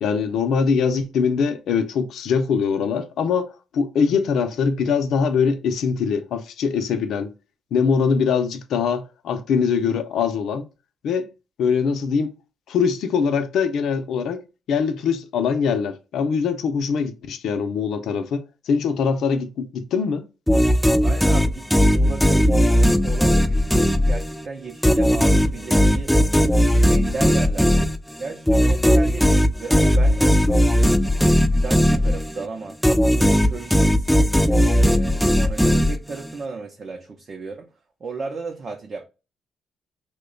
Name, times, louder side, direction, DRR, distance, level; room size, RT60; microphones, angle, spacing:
voice 1, 0.0-7.3 7.7-10.7 11.0-11.3 11.6-12.3 12.7-20.3, left 6 dB, 75° left, 0.5 m, -22 dB
sound 1, 20.5-24.4 24.8-32.5 32.8-36.3, equal, 5° left, 0.3 m, -17 dB
voice 2, 21.0-26.2 26.9-27.9 28.2-30.6 31.5-32.8 33.2-34.1 34.5-37.7 38.0-39.1, right 4 dB, 45° right, 0.6 m, -34 dB
3.0 x 2.2 x 3.7 m
cardioid pair, 90°, 0 cm